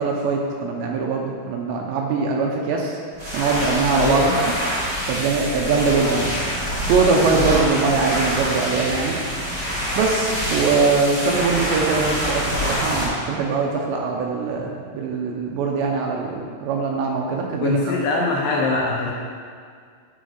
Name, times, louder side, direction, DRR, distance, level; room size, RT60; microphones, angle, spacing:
voice 1, 0.0-3.0 3.3-4.5 5.1-6.3 6.9-9.2 10.0-17.9, right 4 dB, 85° right, -1 dB, 2.7 m, -22 dB
sound 1, 3.1-13.0, equal, 35° right, 0.9 m, -25 dB
voice 2, 4.0-4.4 17.6-19.1, left 3 dB, 80° left, -3 dB, 2.5 m, -22 dB
11.5 x 4.6 x 5.1 m, 2.1 s
omnidirectional pair, 5.6 m